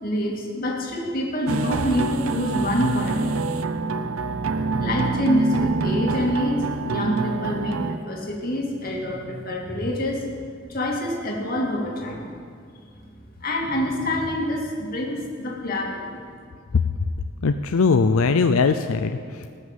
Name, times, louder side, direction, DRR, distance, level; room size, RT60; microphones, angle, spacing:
voice 1, 0.0-3.4 4.8-12.3 13.4-16.2, left 1 dB, 45° left, -1 dB, 2.3 m, -26 dB
sound 1, 1.5-8.0, right 3 dB, 80° right, 0.7 m, -26 dB
voice 2, 17.4-19.5, left 4 dB, 85° left, 8 dB, 0.5 m, -20 dB
19.0 x 6.4 x 7.3 m, 2.3 s
head